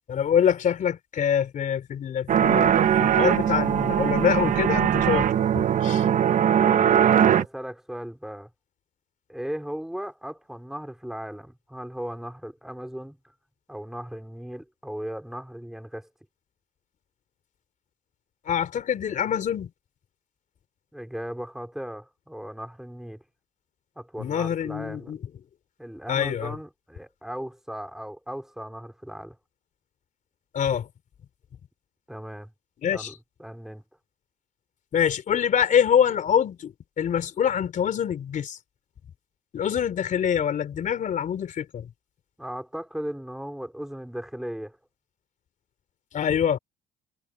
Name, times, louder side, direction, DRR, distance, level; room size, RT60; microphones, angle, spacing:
voice 1, 0.1-5.3 5.5-6.0 18.5-19.7 24.2-25.2 26.1-26.6 30.5-30.9 32.8-33.1 34.9-38.6 39.5-41.9 46.1-46.6, left 8 dB, 50° left, 4.0 m, -25 dB
sound 1, 2.3-7.5, right 9 dB, 50° right, 1.2 m, -20 dB
voice 2, 6.4-8.5 9.3-13.3 13.7-16.1 20.9-23.2 24.0-25.2 25.8-29.4 32.1-32.5 32.9-33.8 42.4-44.8, equal, ahead, 4.7 m, -37 dB
cardioid pair, 110°, 17 cm